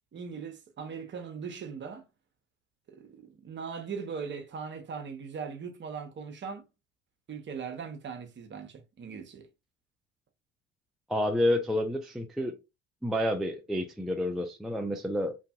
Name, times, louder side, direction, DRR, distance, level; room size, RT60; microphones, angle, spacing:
voice 1, 0.1-2.1 2.9-6.6 7.3-9.5, right 6 dB, 30° right, 0.8 m, -39 dB
voice 2, 11.1-12.6 13.0-15.4, left 1 dB, ahead, 0.4 m, -29 dB
2.7 x 2.5 x 2.3 m
hypercardioid pair, 60°, 36 cm